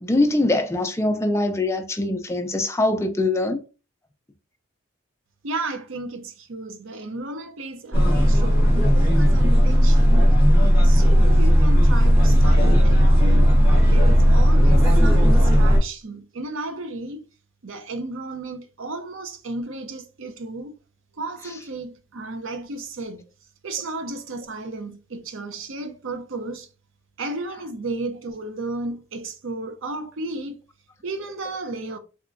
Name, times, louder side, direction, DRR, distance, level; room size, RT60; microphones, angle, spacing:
voice 1, 0.0-3.6, left 2 dB, 15° left, 0.4 m, -23 dB
voice 2, 5.4-10.3 10.8-17.2 17.6-20.7 21.2-23.2 23.6-26.7 27.2-30.6 31.0-32.0, right 2 dB, 75° right, 0.6 m, -33 dB
sound 1, 7.9-15.8, equal, 10° right, 1.2 m, -15 dB
3.6 x 3.0 x 2.6 m
head